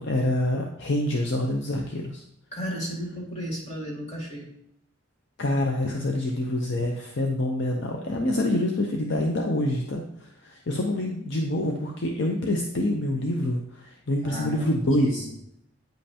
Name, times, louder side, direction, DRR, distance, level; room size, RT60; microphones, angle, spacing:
voice 1, 0.0-2.2 5.4-15.3, left 1 dB, 55° left, 1 dB, 0.7 m, -26 dB
voice 2, 2.5-4.5 14.2-15.3, equal, 30° left, -4 dB, 2.1 m, -34 dB
9.0 x 5.3 x 2.9 m, 0.77 s
head